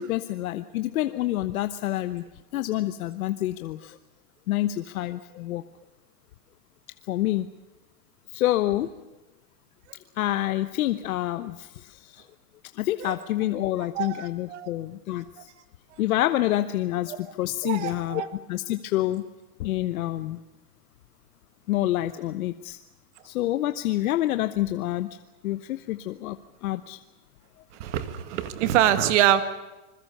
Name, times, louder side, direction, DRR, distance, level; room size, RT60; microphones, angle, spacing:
voice 1, 0.0-2.2 2.5-4.0 4.5-5.6 7.1-7.5 8.3-8.9 10.2-12.2 12.8-15.2 16.0-18.2 18.5-19.2 19.6-20.4 21.7-22.8 23.2-25.1 25.4-26.4 26.6-27.0, left 15 dB, 65° left, 10 dB, 1.1 m, -27 dB
voice 2, 14.0-14.7 17.1-17.2 17.6-18.3 27.8-29.4, right 11 dB, 50° right, 12 dB, 1.9 m, -24 dB
26.5 x 21.5 x 6.8 m, 1.1 s
supercardioid pair, 175°, 46 cm